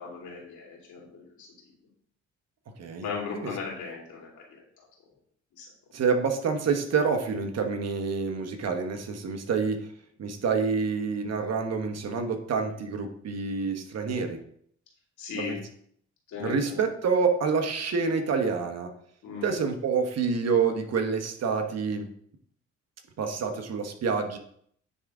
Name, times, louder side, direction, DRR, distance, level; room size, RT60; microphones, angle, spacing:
voice 1, 0.0-1.7 3.0-4.9 5.6-5.7 15.2-15.6 16.3-16.8 19.2-19.5, left 6 dB, 75° left, -3 dB, 2.8 m, -38 dB
voice 2, 5.9-9.9 10.2-14.4 15.4-15.6 16.4-18.9 19.4-22.1 23.2-24.4, right 5 dB, 55° right, 5 dB, 1.1 m, -27 dB
9.4 x 3.6 x 3.7 m, 0.65 s
cardioid pair, 90°, 30 cm